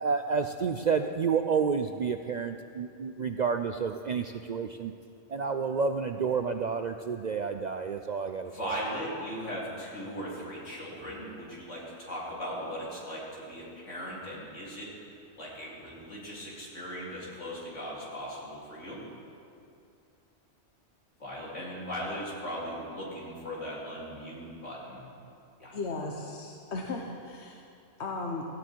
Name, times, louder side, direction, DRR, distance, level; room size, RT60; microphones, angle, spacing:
voice 1, 0.0-4.9 5.3-8.7, right 5 dB, 55° right, 7 dB, 0.5 m, -30 dB
voice 2, 8.4-14.9 15.4-19.0 21.2-25.1 25.6-25.7, equal, 80° left, -6 dB, 4.0 m, -38 dB
voice 3, 25.7-27.6 28.0-28.4, left 3 dB, 65° left, 1 dB, 1.3 m, -36 dB
17.0 x 15.5 x 4.6 m, 2.6 s
omnidirectional pair, 1.3 m